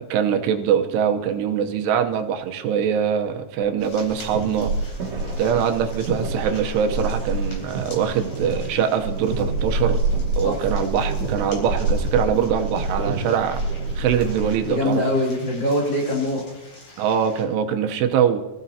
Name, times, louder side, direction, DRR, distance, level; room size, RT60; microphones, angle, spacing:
voice 1, 0.0-4.7 5.4-10.0 10.4-13.6 14.0-15.0 17.0-18.4, right 8 dB, 85° right, 6 dB, 3.0 m, -23 dB
sound 1, 3.8-17.4, left 2 dB, 50° left, 5.1 m, -46 dB
sound 2, 4.1-14.7, right 2 dB, 50° right, 3.2 m, -27 dB
voice 2, 14.6-16.4, left 1 dB, 30° left, -3 dB, 3.2 m, -23 dB
25.5 x 15.0 x 2.8 m, 1.1 s
omnidirectional pair, 4.7 m